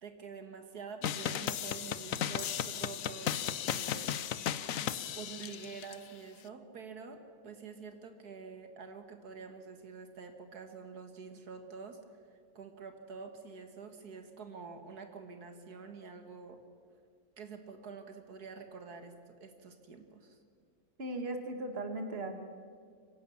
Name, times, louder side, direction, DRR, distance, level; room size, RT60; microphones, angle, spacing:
voice 1, 0.0-4.1 4.5-4.6 5.1-16.6 17.4-20.4, right 5 dB, 80° right, 7 dB, 2.1 m, -47 dB
sound 1, 1.0-6.0, left 9 dB, 65° left, 1.1 m, -35 dB
voice 2, 21.0-22.4, right 2 dB, 40° right, 6 dB, 2.0 m, -37 dB
25.5 x 17.0 x 7.1 m, 2.2 s
omnidirectional pair, 1.6 m